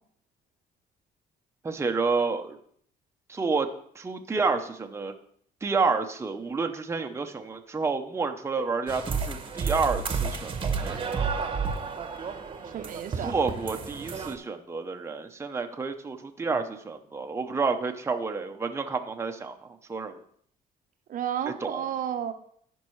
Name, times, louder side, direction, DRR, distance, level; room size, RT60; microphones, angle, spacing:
voice 1, 1.6-2.6 3.3-3.7 4.0-5.1 5.6-11.2 13.2-20.2 21.7-21.8, right 4 dB, 15° right, 4 dB, 0.7 m, -29 dB
sound 1, 8.9-14.4, right 5 dB, 30° right, 1.0 m, -31 dB
voice 2, 12.6-13.3 21.1-22.3, right 9 dB, 55° right, 8 dB, 0.7 m, -32 dB
14.5 x 5.3 x 3.1 m, 0.63 s
cardioid pair, 110°, 17 cm